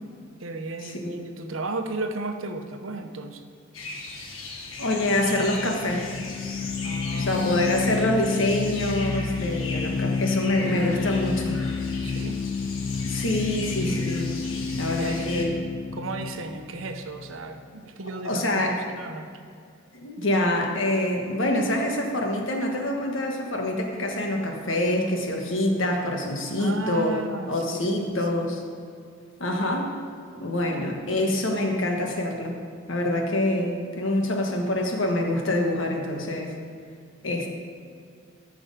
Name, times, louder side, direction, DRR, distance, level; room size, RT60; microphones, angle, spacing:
voice 1, 0.4-3.4 6.8-7.4 12.0-12.4 14.7-19.3 26.6-28.3, right 3 dB, 75° right, 6 dB, 0.9 m, -35 dB
sound 1, 3.7-15.4, left 3 dB, 85° left, 1.4 m, -38 dB
sound 2, 4.6-17.8, left 5 dB, 50° left, 0.4 m, -30 dB
voice 2, 4.8-6.3 7.1-11.9 13.0-15.5 18.2-18.8 19.9-27.2 27.5-28.6 29.4-29.9 30.4-32.5 32.9-36.5 37.2-37.5, left 1 dB, 70° left, 2 dB, 1.4 m, -26 dB
13.0 x 6.2 x 5.1 m, 2.2 s
head